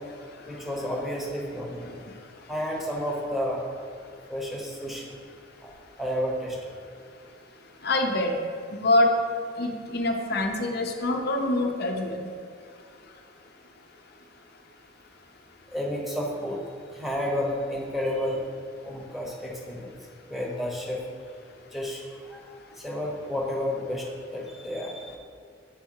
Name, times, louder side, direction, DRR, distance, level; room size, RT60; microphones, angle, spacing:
voice 1, 0.5-1.9 2.5-3.6 4.3-5.1 5.6-5.7 6.0-6.7 15.7-16.6 16.9-18.4 18.8-19.9 20.3-21.0 21.7-24.1 24.3-25.2, equal, ahead, -3 dB, 1.0 m, -31 dB
voice 2, 7.8-8.4 8.7-9.2 9.6-12.2, left 2 dB, 55° left, 3 dB, 0.7 m, -25 dB
8.1 x 3.3 x 4.7 m, 2.3 s
head